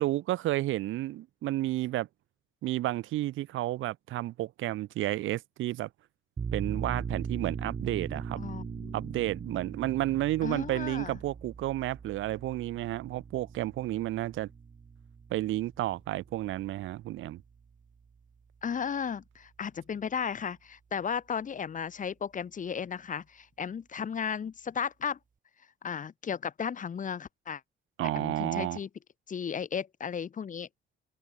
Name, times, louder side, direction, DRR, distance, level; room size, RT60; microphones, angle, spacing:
voice 1, 0.0-2.1 2.6-5.9 6.5-8.4 8.9-14.5 15.3-17.4 28.0-28.8, right 15 dB, 85° right, 1.1 m, -31 dB
sound 1, 6.4-17.7, right 6 dB, 40° right, 5.9 m, -40 dB
voice 2, 8.4-8.9 10.4-11.2 18.6-25.2 25.8-27.6 28.2-28.9 29.3-30.7, left 7 dB, 40° left, 1.0 m, -35 dB
open air
cardioid pair, 90°, 20 cm